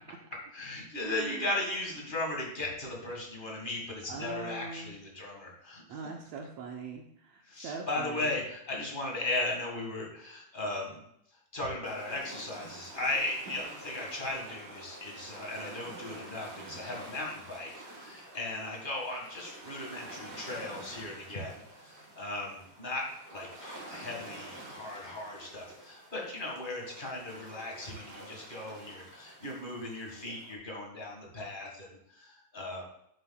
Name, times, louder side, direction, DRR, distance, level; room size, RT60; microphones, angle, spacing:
voice 1, 0.5-6.0 7.4-11.0 11.5-23.0 23.3-32.8, left 2 dB, 25° left, -1 dB, 1.2 m, -37 dB
voice 2, 1.0-1.5 3.5-3.6 4.1-4.9 5.9-8.3, right 5 dB, 70° right, 2 dB, 1.8 m, -41 dB
sound 1, 11.8-30.5, right 1 dB, 40° right, 2.2 m, -48 dB
10.5 x 7.7 x 2.3 m, 0.73 s
omnidirectional pair, 3.7 m